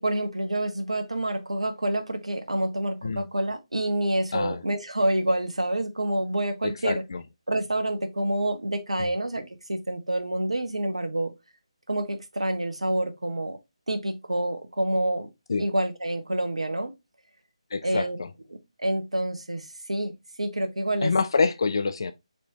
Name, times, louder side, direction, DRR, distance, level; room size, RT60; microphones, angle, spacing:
voice 1, 0.0-7.0 7.5-11.3 11.9-13.6 13.9-15.3 15.6-16.9 17.8-18.2 18.5-21.1, right 1 dB, 70° right, 0.8 m, -28 dB
voice 2, 6.8-7.2 9.0-9.1 15.5-15.6 17.7-18.1 21.0-22.1, left 4 dB, 45° left, 0.3 m, -25 dB
4.2 x 3.3 x 2.7 m
figure-of-eight pair, 150°, 3 cm